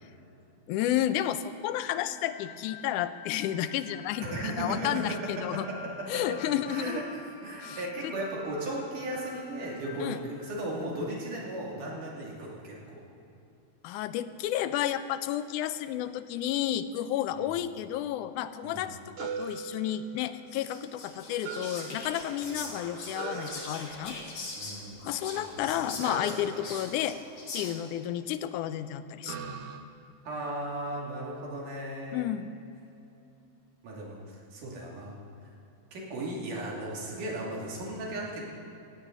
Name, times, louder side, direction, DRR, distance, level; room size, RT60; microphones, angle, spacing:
voice 1, 0.7-5.7 6.1-7.0 7.6-7.8 8.0-8.1 10.0-10.2 13.8-24.2 25.0-27.2 27.5-29.4 32.1-32.6, left 11 dB, 90° left, 12 dB, 2.1 m, -31 dB
sound 1, 2.1-11.3, left 5 dB, 70° left, 1.4 m, -48 dB
voice 2, 4.2-4.8 6.7-7.1 7.4-13.1 17.4-17.5 18.6-18.9 24.6-25.0 25.3-25.6 30.2-32.3 33.8-35.2 35.9-38.4, right 1 dB, 85° right, -3 dB, 4.2 m, -36 dB
sound 2, 19.2-20.6 21.4-22.6 23.1-24.4 26.0-28.1 29.2-29.8, right 5 dB, 70° right, 2.0 m, -41 dB
Whispering, 20.5-28.0, left 3 dB, 45° left, 2.7 m, -42 dB
18.0 x 15.0 x 3.9 m, 2.8 s
omnidirectional pair, 3.5 m